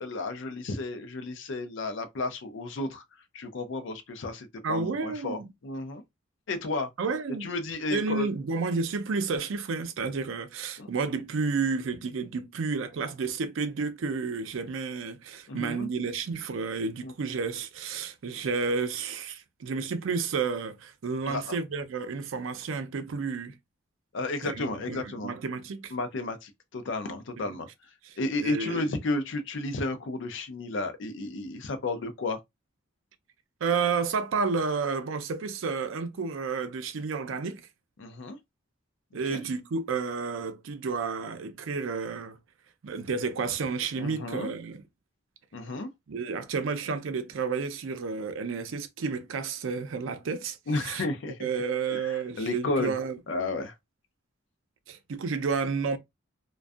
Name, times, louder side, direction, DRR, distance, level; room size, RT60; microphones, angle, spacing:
voice 1, 0.0-6.0 6.5-6.9 7.4-8.3 10.8-10.9 15.5-15.9 17.0-17.1 21.3-21.6 24.1-25.3 25.9-32.4 38.0-38.4 39.3-39.4 44.0-44.5 45.5-45.9 50.7-51.5 51.9-52.9 53.3-53.7, left 2 dB, 65° left, 0.5 m, -33 dB
voice 2, 4.6-5.5 7.0-7.5 7.9-23.5 24.4-25.9 27.5-27.6 28.4-28.9 33.6-37.6 39.1-42.4 42.8-44.8 46.1-51.0 51.4-53.2 54.9-56.0, right 4 dB, 75° right, 0.4 m, -31 dB
2.5 x 2.2 x 2.3 m
head